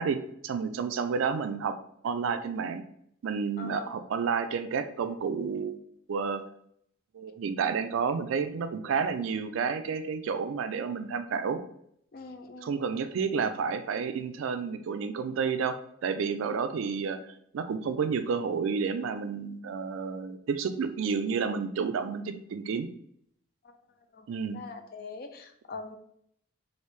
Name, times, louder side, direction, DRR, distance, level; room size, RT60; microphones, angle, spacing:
voice 1, 0.0-1.8 2.0-2.9 3.2-5.8 6.1-6.4 7.1-11.6 12.6-17.2 17.5-22.9 24.3-24.6, right 5 dB, 75° right, 9 dB, 0.3 m, -30 dB
voice 2, 3.6-3.9 12.1-12.8 23.6-23.7 24.1-24.3 24.5-26.0, left 4 dB, 45° left, 6 dB, 0.4 m, -42 dB
3.2 x 2.5 x 3.1 m, 0.68 s
head